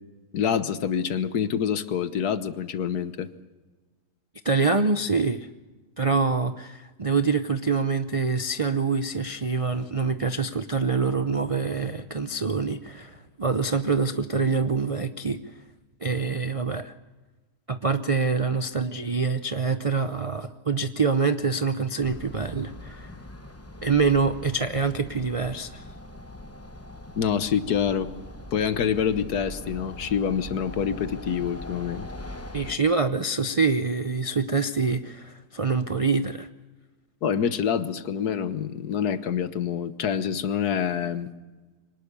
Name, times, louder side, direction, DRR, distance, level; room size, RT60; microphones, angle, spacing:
voice 1, 0.3-3.3 27.2-28.1 28.5-32.1 37.2-41.3, left 8 dB, 75° left, 12 dB, 1.6 m, -26 dB
voice 2, 4.4-5.5 6.0-15.4 16.0-16.9 17.7-23.1 23.8-25.8 32.5-36.5, right 4 dB, 65° right, 10 dB, 0.3 m, -25 dB
sound 1, 22.0-32.7, left 1 dB, 10° left, 0.9 m, -41 dB
24.5 x 19.0 x 6.8 m, 1.2 s
omnidirectional pair, 1.7 m